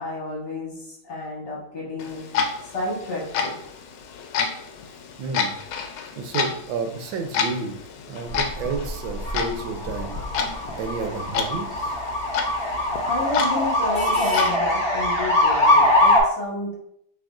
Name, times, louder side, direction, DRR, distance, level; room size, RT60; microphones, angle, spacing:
voice 1, 0.0-2.2 2.7-3.5 13.0-16.8, left 2 dB, 55° left, -4 dB, 1.7 m, -30 dB
Clock, 2.0-14.6, left 5 dB, 85° left, 1.5 m, -30 dB
voice 2, 5.2-5.5 6.2-7.8 8.1-10.2 10.8-11.9, right 4 dB, 75° right, 5 dB, 1.3 m, -30 dB
sound 1, 8.3-16.2, left 1 dB, 30° left, 1.5 m, -22 dB
6.0 x 3.5 x 2.4 m, 0.70 s
omnidirectional pair, 2.3 m